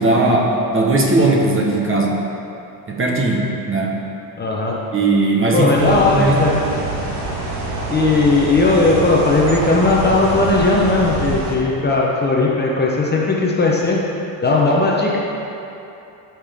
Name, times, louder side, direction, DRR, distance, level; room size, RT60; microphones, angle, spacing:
voice 1, 0.0-2.2 2.9-4.0 4.9-6.8, right 2 dB, 25° right, -1 dB, 1.2 m, -18 dB
voice 2, 4.4-4.8 5.5-6.6 7.9-14.0 14.4-15.2, left 3 dB, 20° left, -3 dB, 0.9 m, -17 dB
sound 1, 5.7-11.6, right 2 dB, 55° right, 1.9 m, -25 dB
14.5 x 5.8 x 3.6 m, 2.9 s
cardioid pair, 140°, 48 cm